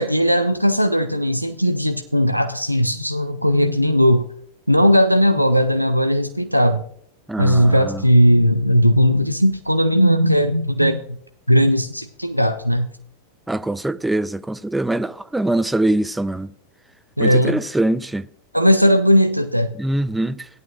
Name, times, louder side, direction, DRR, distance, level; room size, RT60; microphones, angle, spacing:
voice 1, 0.0-4.3 4.7-6.8 7.4-11.2 11.5-12.9 17.2-17.6 18.5-19.8, equal, 90° right, 0.5 m, -17 dB
voice 2, 7.3-8.0 13.5-16.5 17.2-18.3 19.8-20.5, right 1 dB, 5° right, 0.4 m, -23 dB
17.0 x 10.5 x 2.5 m
figure-of-eight pair, 90°, 0 cm